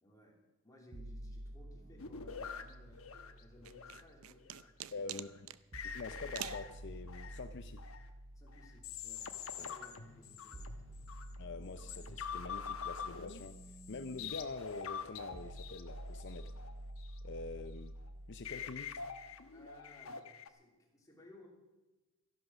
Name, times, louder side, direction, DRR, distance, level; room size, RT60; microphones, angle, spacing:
voice 1, 0.0-5.2 8.3-11.1 19.5-21.5, left 1 dB, 15° left, -2 dB, 3.1 m, -60 dB
sound 1, 0.9-4.9 5.7-19.7, right 1 dB, 45° right, 0.7 m, -51 dB
sound 2, 2.0-4.0 4.4-4.7 5.1-5.4 5.7-8.0 8.5-11.4 11.8-17.6 18.0-18.1 18.4-20.5, left 6 dB, 90° left, 1.1 m, -46 dB
sound 3, 3.6-5.6 6.3-6.7, right 11 dB, 85° right, 0.6 m, -45 dB
voice 2, 4.9-5.5 5.9-7.8 9.5-9.7 11.4-13.5 13.9-16.5 17.2-17.9 18.3-18.9, left 3 dB, 60° left, 9 dB, 0.6 m, -45 dB
14.0 x 11.0 x 6.2 m, 1.2 s
head